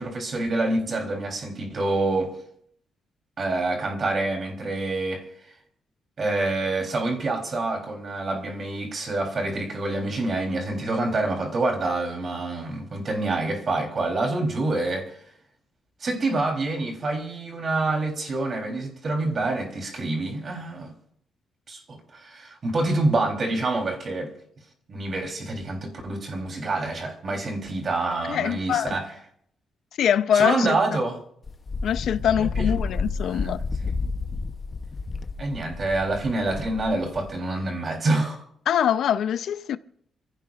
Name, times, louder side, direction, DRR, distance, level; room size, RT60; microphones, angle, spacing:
voice 1, 0.0-2.3 3.4-5.2 6.2-15.2 16.0-20.9 21.7-24.3 24.9-29.1 30.3-31.2 32.4-33.5 35.4-38.4, right 2 dB, 35° right, 3.6 m, -27 dB
voice 2, 28.3-29.0 30.0-31.0 31.8-33.6 38.7-39.8, left 9 dB, 70° left, 0.6 m, -24 dB
Wind, 31.4-37.4, left 4 dB, 25° left, 0.8 m, -31 dB
28.0 x 16.0 x 2.5 m
wide cardioid pair, 175°, 0 cm